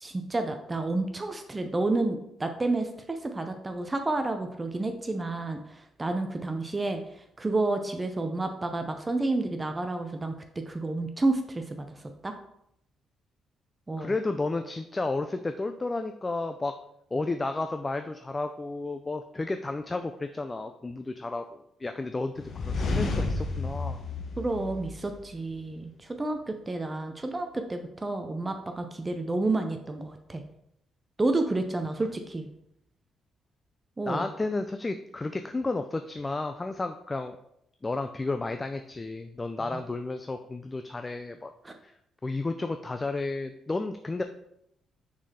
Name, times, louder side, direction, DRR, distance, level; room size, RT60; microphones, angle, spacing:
voice 1, 0.0-7.0 7.4-11.9 12.2-12.3 13.9-14.1 24.4-30.4 31.2-32.5 34.0-34.2 39.6-39.8 41.6-41.7, right 2 dB, 20° right, 6 dB, 0.6 m, -30 dB
voice 2, 14.0-16.8 17.1-24.0 34.1-37.4 37.8-41.5 41.8-41.9 42.2-44.2, left 3 dB, 20° left, 7 dB, 0.4 m, -32 dB
sound 1, 22.4-25.4, left 3 dB, 55° left, 1.0 m, -31 dB
6.0 x 4.1 x 4.2 m, 0.77 s
cardioid pair, 90°, 0 cm